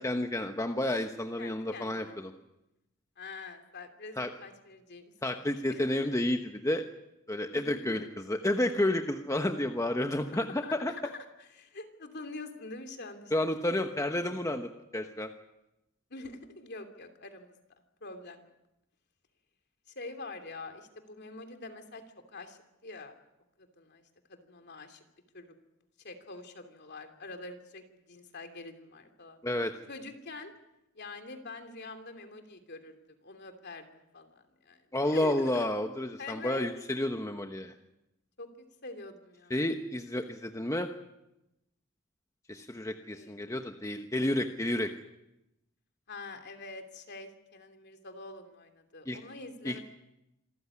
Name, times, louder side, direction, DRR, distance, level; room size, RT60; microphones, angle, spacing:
voice 1, 0.0-2.3 4.2-4.3 5.2-6.8 7.3-10.9 13.3-15.3 29.4-29.7 34.9-37.7 39.5-40.9 42.5-44.9 49.1-49.2 49.6-49.8, left 1 dB, 15° left, 5 dB, 1.1 m, -31 dB
voice 2, 1.4-2.2 3.2-5.9 7.6-8.0 10.3-13.3 16.1-17.6 18.0-18.5 19.9-22.0 22.3-23.1 23.6-24.0 24.3-25.0 25.3-25.5 26.0-29.4 29.9-30.5 30.9-33.0 33.2-35.7 36.2-36.7 38.4-39.5 43.1-43.4 46.1-49.8, left 3 dB, 55° left, 6 dB, 2.9 m, -45 dB
27.0 x 14.5 x 9.9 m, 0.91 s
head